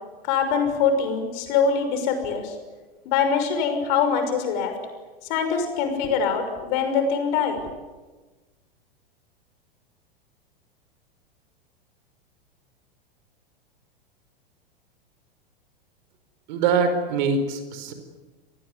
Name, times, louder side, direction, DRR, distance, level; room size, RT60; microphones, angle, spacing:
voice 1, 0.2-2.5 3.0-4.7 5.3-7.6, left 6 dB, 50° left, 7 dB, 6.2 m, -23 dB
voice 2, 16.5-17.9, right 5 dB, 50° right, 9 dB, 5.0 m, -23 dB
28.0 x 20.0 x 9.8 m, 1.2 s
figure-of-eight pair, 95°, 30 cm